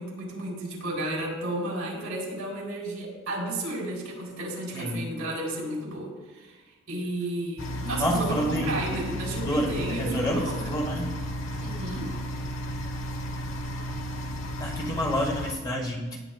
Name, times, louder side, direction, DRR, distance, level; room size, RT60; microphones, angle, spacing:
voice 1, 0.0-6.6 6.9-10.7 11.6-12.1, right 1 dB, 85° right, -2 dB, 3.7 m, -33 dB
voice 2, 4.7-5.1 8.0-9.0 9.4-11.1 14.6-16.2, equal, 20° left, 0 dB, 1.1 m, -28 dB
sound 1, 7.6-15.5, equal, 70° left, 1.1 m, -33 dB
17.0 x 9.0 x 2.3 m, 1.3 s
head